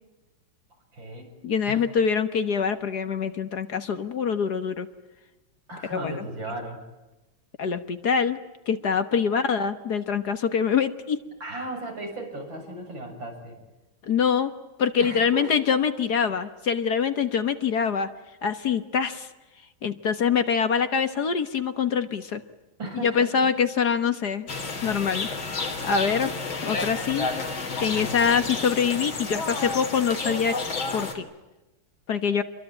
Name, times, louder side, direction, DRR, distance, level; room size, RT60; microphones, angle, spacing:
voice 1, 0.9-1.3 1.7-1.8 5.7-6.8 9.1-9.2 11.4-13.6 15.0-15.5 22.8-23.3 27.8-28.2, right 1 dB, 70° right, 2 dB, 7.9 m, -36 dB
voice 2, 1.4-4.9 5.9-6.2 7.6-8.4 8.7-11.2 14.0-14.5 14.8-18.1 18.4-19.3 19.8-22.4 23.0-24.5 24.8-25.6 25.8-26.3 26.6-27.3 27.8-30.6 30.9-31.3 32.1-32.4, left 6 dB, 55° left, 10 dB, 1.8 m, -24 dB
sound 1, 24.5-31.1, left 3 dB, 75° left, 4.1 m, -31 dB
28.0 x 23.0 x 9.0 m, 1.0 s
omnidirectional pair, 2.2 m